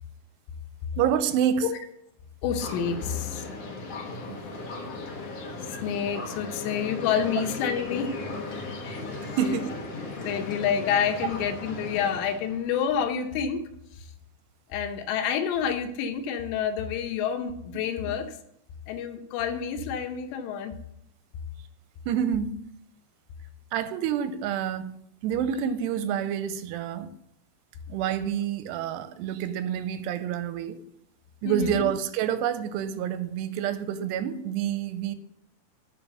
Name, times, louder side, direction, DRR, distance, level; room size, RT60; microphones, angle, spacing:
voice 1, 1.0-1.7 4.3-4.5 9.4-9.8 22.1-22.5 23.7-24.9 25.2-27.1 27.9-30.8 31.4-35.2, right 9 dB, 90° right, 2.7 m, -28 dB
voice 2, 2.4-3.5 5.8-8.2 8.8-9.0 9.4-9.6 10.2-14.1 14.7-18.4 18.9-20.8 31.5-31.9, left 7 dB, 90° left, 3.0 m, -28 dB
sound 1, 2.6-12.7, left 3 dB, 55° left, 1.8 m, -37 dB
8.9 x 4.7 x 6.7 m
omnidirectional pair, 4.8 m